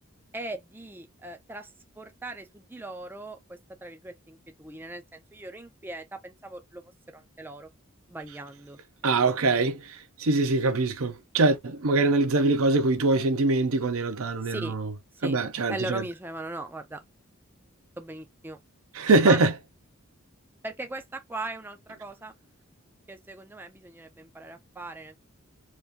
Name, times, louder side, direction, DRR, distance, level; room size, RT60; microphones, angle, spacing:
voice 1, 0.3-6.8 7.1-7.7 8.1-9.4 14.4-14.7 15.2-15.4 15.7-17.0 18.0-18.6 19.2-19.4 20.6-22.3 23.1-25.2, right 2 dB, 10° right, 0.4 m, -39 dB
voice 2, 9.0-14.9 15.2-16.0 18.9-19.5, right 3 dB, 70° right, 0.7 m, -23 dB
2.9 x 2.6 x 3.5 m
head